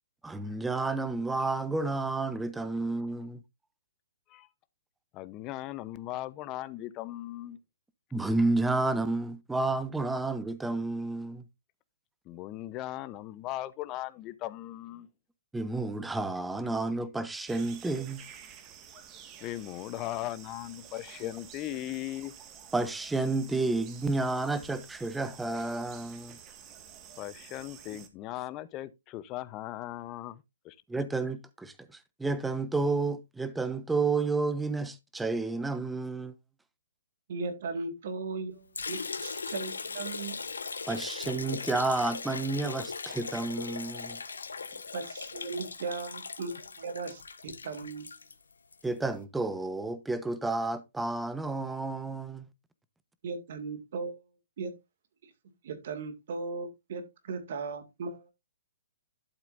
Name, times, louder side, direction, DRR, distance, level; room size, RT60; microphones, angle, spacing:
voice 1, 0.2-3.4 8.1-11.4 15.5-18.2 22.7-26.4 30.9-36.4 40.9-44.2 48.8-52.5, right 3 dB, 5° right, 1.0 m, -31 dB
voice 2, 5.1-7.6 12.3-15.1 19.4-22.3 27.2-30.8, left 15 dB, 30° left, 0.8 m, -38 dB
sound 1, 17.5-28.1, right 8 dB, 25° right, 1.7 m, -50 dB
voice 3, 37.3-40.4 44.9-48.0 53.2-54.3 54.6-54.7 55.2-55.3 55.6-58.3, right 4 dB, 60° right, 2.2 m, -37 dB
Liquid, 38.8-48.9, left 4 dB, 85° left, 1.1 m, -39 dB
12.0 x 7.3 x 2.6 m
hypercardioid pair, 135°, 0 cm